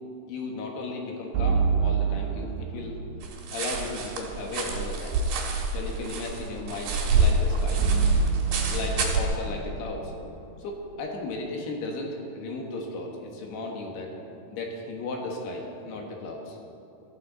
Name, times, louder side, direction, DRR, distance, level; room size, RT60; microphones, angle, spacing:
voice 1, 0.3-3.0 3.5-5.2 5.7-7.8 8.4-10.1 10.6-14.1 14.5-16.6, left 2 dB, 75° left, 0 dB, 3.5 m, -35 dB
sound 1, 1.3-3.5 7.8-11.0, right 6 dB, 90° right, 3.3 m, -28 dB
sound 2, 3.2-9.2, right 3 dB, 70° right, 3.1 m, -27 dB
15.0 x 12.5 x 3.9 m, 2.7 s
omnidirectional pair, 4.8 m